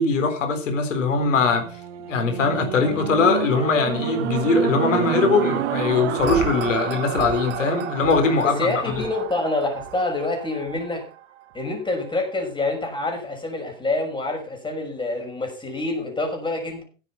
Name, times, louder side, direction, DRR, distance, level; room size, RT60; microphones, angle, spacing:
voice 1, 0.0-1.7 2.1-9.0, left 4 dB, 65° left, 5 dB, 4.0 m, -21 dB
sound 1, 1.1-11.4 12.0-12.1, right 11 dB, 60° right, 1.7 m, -30 dB
voice 2, 8.4-11.1 11.5-16.8, left 2 dB, 10° left, 3 dB, 5.9 m, -27 dB
16.0 x 8.3 x 5.8 m, 0.36 s
figure-of-eight pair, 85°, 40 cm